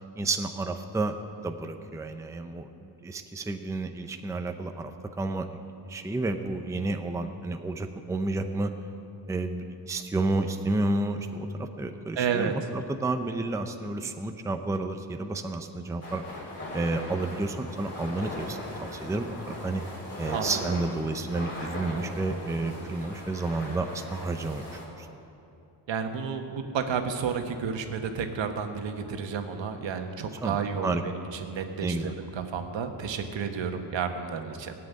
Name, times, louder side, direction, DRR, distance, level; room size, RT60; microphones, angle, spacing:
voice 1, 0.2-4.9 5.2-8.7 9.3-16.2 16.7-19.8 20.2-24.7 25.0-25.1 30.4-31.0 31.8-32.1, right 2 dB, 5° right, 6 dB, 0.5 m, -31 dB
voice 2, 12.1-12.5 20.3-20.5 25.9-31.1 31.4-34.7, right 6 dB, 80° right, 5 dB, 1.4 m, -31 dB
sound 1, 16.0-24.9, left 1 dB, 30° left, 3.4 m, -39 dB
17.5 x 7.7 x 9.3 m, 2.7 s
wide cardioid pair, 165°, 44 cm